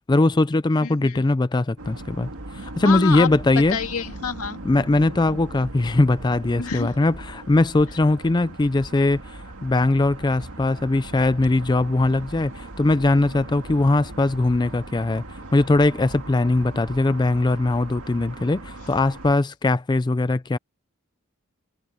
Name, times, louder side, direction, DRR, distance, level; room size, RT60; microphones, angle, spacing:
voice 1, 0.1-3.8 4.6-15.2 15.5-20.6, left 2 dB, 20° left, 0.4 m, -21 dB
voice 2, 0.8-1.3 2.8-3.3 3.7-4.6 6.5-6.9, left 6 dB, 90° left, 2.0 m, -28 dB
sound 1, 1.8-19.3, right 2 dB, 70° right, 2.3 m, -39 dB
head